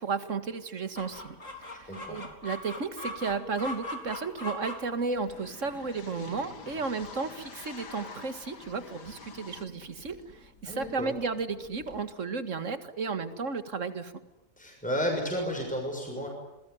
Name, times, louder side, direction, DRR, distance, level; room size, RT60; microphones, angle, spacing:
voice 1, 0.0-14.1, right 4 dB, 50° right, 10 dB, 2.1 m, -34 dB
Chicken rooster, 1.0-12.1, left 1 dB, 50° left, 4.6 m, -43 dB
voice 2, 1.7-2.2 10.6-11.1 14.6-16.3, equal, 5° left, 1 dB, 6.6 m, -32 dB
sound 1, 4.0-9.6, left 5 dB, 80° left, 2.6 m, -48 dB
27.5 x 21.5 x 9.6 m, 0.96 s
omnidirectional pair, 1.8 m